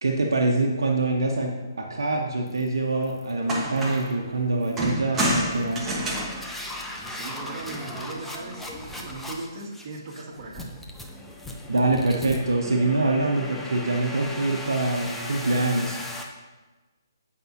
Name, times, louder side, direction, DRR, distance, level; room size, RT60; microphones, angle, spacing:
voice 1, 0.0-5.9 11.7-16.0, right 2 dB, 80° right, 0 dB, 1.0 m, -25 dB
sound 1, 2.5-2.7 3.0-3.3 3.8-4.1 4.6-4.9 5.5-16.2, left 1 dB, 5° left, 0.7 m, -38 dB
sound 2, 3.0-3.1 3.4-4.2 4.8-7.5 8.7-9.2, equal, 10° right, 1.4 m, -29 dB
voice 2, 7.1-8.6 9.0-10.7, right 3 dB, 35° right, -4 dB, 2.2 m, -38 dB
15.0 x 5.4 x 2.8 m, 1.2 s
hypercardioid pair, 145°, 2 cm